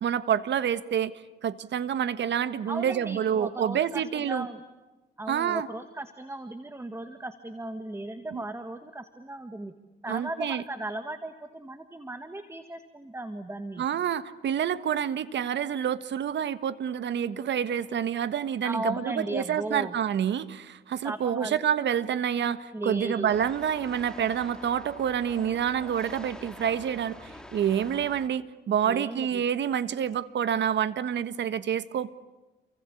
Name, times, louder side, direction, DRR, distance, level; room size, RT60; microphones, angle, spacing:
voice 1, 0.0-4.5 5.3-5.7 8.3-8.4 10.1-10.6 13.8-32.1, right 9 dB, 65° right, 14 dB, 1.6 m, -28 dB
voice 2, 2.7-4.6 5.2-9.7 10.0-13.9 18.6-19.9 21.0-21.6 22.7-23.3 28.8-29.4, right 1 dB, 15° right, 9 dB, 1.9 m, -36 dB
sound 1, 23.3-28.3, left 1 dB, 5° left, 3.4 m, -46 dB
29.0 x 24.0 x 8.6 m, 1.1 s
cardioid pair, 90°, 20 cm